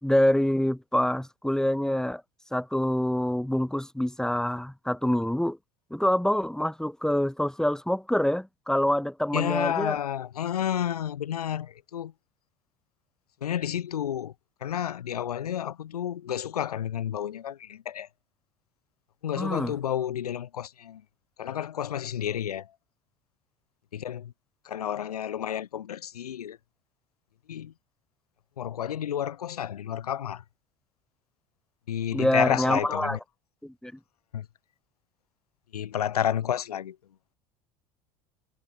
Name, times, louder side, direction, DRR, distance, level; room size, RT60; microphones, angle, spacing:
voice 1, 0.0-2.2 2.5-5.6 5.9-10.0 19.4-19.7 32.1-33.2 33.6-33.9, left 1 dB, 5° left, 6.4 m, -26 dB
voice 2, 9.3-12.1 13.4-14.3 14.6-18.1 19.2-21.0 21.4-22.8 23.9-24.3 24.6-26.6 27.5-27.7 28.6-30.4 31.9-33.2 34.3-34.5 35.7-37.0, left 10 dB, 75° left, 5.7 m, -31 dB
figure-of-eight pair, 65°, 20 cm